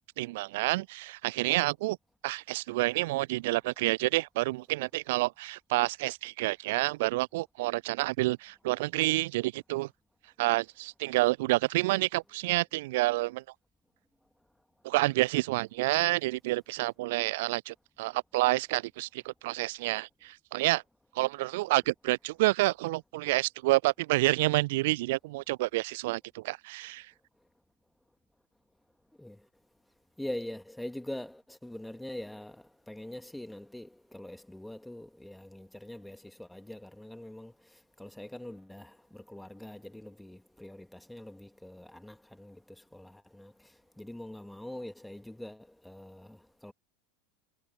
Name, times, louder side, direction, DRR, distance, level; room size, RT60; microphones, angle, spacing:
voice 1, 0.0-2.0 2.2-9.9 10.4-13.4 14.8-20.8 21.1-27.1, right 20 dB, 55° right, 0.3 m, -29 dB
voice 2, 30.2-37.5 38.0-42.6 42.9-43.5 44.0-46.7, left 1 dB, 5° left, 2.5 m, -43 dB
figure-of-eight pair, 80°, 0 cm